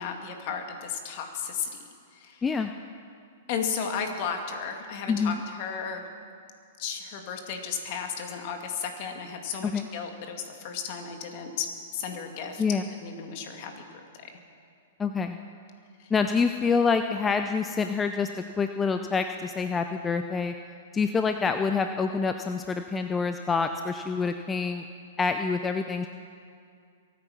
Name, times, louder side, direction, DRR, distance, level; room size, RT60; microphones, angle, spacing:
voice 1, 0.0-1.7 2.1-2.4 3.5-6.1 6.8-12.6 13.0-13.8 16.0-16.1, left 6 dB, 50° left, 4 dB, 2.3 m, -34 dB
voice 2, 2.4-2.7 5.1-5.4 9.6-9.9 12.6-12.9 15.0-15.4 16.1-20.5 20.9-24.8 25.2-26.1, left 5 dB, 15° left, 7 dB, 0.6 m, -27 dB
23.5 x 9.2 x 5.9 m, 2.3 s
hypercardioid pair, 120°, 0 cm